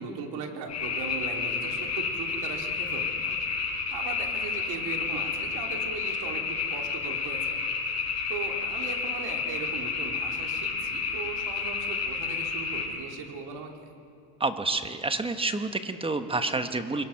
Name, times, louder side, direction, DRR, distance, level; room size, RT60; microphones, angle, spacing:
voice 1, 0.0-3.4 3.9-7.6 8.3-13.9, right 5 dB, 60° right, 2 dB, 3.4 m, -38 dB
sound 1, 0.7-12.9, left 5 dB, 35° left, 5.6 m, -31 dB
voice 2, 14.4-17.0, right 3 dB, 10° right, 8 dB, 1.3 m, -29 dB
25.0 x 22.5 x 5.9 m, 2.7 s
supercardioid pair, 120°, 44 cm